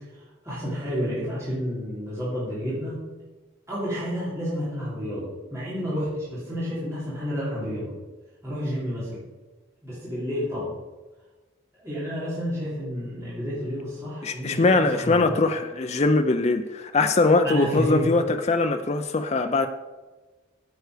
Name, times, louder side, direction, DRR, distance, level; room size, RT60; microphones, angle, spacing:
voice 1, 0.4-3.0 3.7-7.9 8.4-9.2 9.8-10.7 11.8-15.3 17.4-18.1, equal, 15° right, 3.0 m, -30 dB
voice 2, 14.2-19.7, left 3 dB, 30° left, 0.5 m, -22 dB
9.3 x 8.0 x 4.9 m
head